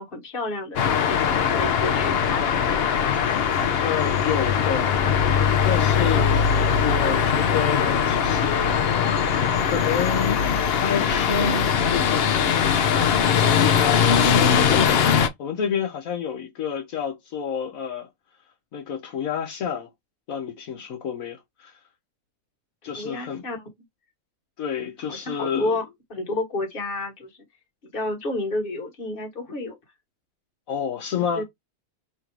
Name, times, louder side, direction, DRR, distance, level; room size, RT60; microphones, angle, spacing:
voice 1, 0.0-2.6 22.8-23.6 25.0-25.8 26.1-27.4 27.8-29.8 31.3-31.4, left 2 dB, 40° left, 1.4 m, -30 dB
sound 1, 0.8-15.3, left 7 dB, 60° left, 0.7 m, -21 dB
voice 2, 3.8-4.9 5.6-6.4 6.8-8.8 9.6-10.4 10.7-12.3 12.6-18.1 18.7-19.9 20.3-21.7 22.8-23.4 24.6-25.8 30.7-31.4, left 7 dB, 75° left, 1.2 m, -29 dB
3.2 x 2.6 x 4.5 m
omnidirectional pair, 1.4 m